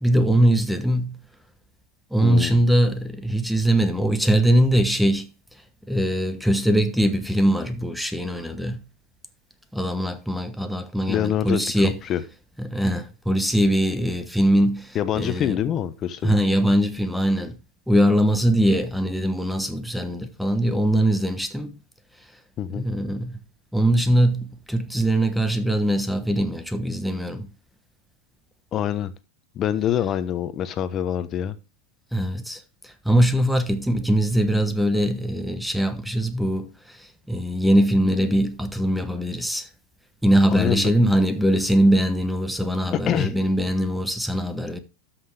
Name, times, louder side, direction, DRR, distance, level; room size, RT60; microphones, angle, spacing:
voice 1, 0.0-1.2 2.1-5.3 5.9-8.8 9.7-12.0 12.6-15.6 16.2-17.5 17.9-21.8 22.7-23.4 23.7-27.5 32.1-39.7 40.2-44.8, right 1 dB, ahead, 1.2 m, -22 dB
voice 2, 2.2-2.6 11.1-11.6 12.1-12.2 14.9-16.3 22.6-22.8 28.7-29.1 29.5-31.6 40.5-40.9 43.1-43.3, left 10 dB, 35° left, 1.1 m, -25 dB
12.5 x 5.9 x 3.4 m
hypercardioid pair, 95°, 0 cm